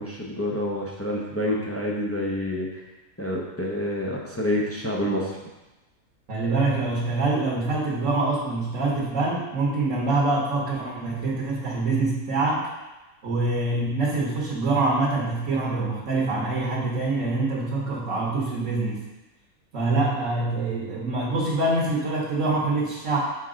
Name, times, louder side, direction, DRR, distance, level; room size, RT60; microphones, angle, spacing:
voice 1, 0.0-2.7 3.2-5.4, left 1 dB, 15° left, -3 dB, 0.6 m, -27 dB
voice 2, 6.3-12.6 13.2-19.0 19.7-23.2, right 2 dB, 60° right, -5 dB, 1.5 m, -25 dB
6.8 x 4.7 x 3.8 m, 1.1 s
omnidirectional pair, 1.5 m